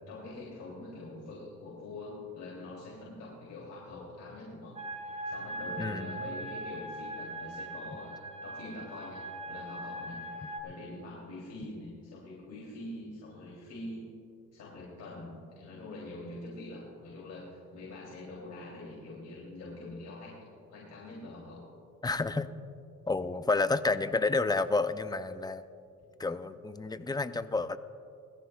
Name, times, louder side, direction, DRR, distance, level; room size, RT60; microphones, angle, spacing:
voice 1, 0.1-4.7 5.2-10.3 10.6-14.1 14.5-21.7 26.8-27.0, left 2 dB, 65° left, -5 dB, 3.2 m, -44 dB
sound 1, 4.8-10.6, right 1 dB, 25° right, 1.5 m, -40 dB
voice 2, 5.8-6.2 22.0-22.5 23.1-25.6 26.2-27.8, left 3 dB, 15° left, 12 dB, 0.5 m, -30 dB
21.0 x 14.5 x 2.4 m, 2.5 s
cardioid pair, 90°, 30 cm